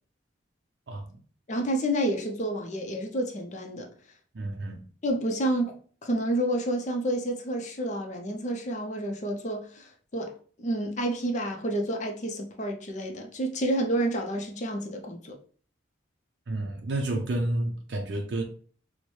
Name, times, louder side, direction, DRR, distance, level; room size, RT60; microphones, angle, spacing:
voice 1, 0.9-1.2 4.3-4.8 16.5-18.4, right 2 dB, 60° right, 0.5 m, -30 dB
voice 2, 1.5-3.9 5.0-10.3 10.6-15.4, right 1 dB, 35° left, 0.5 m, -29 dB
4.4 x 2.1 x 3.0 m
head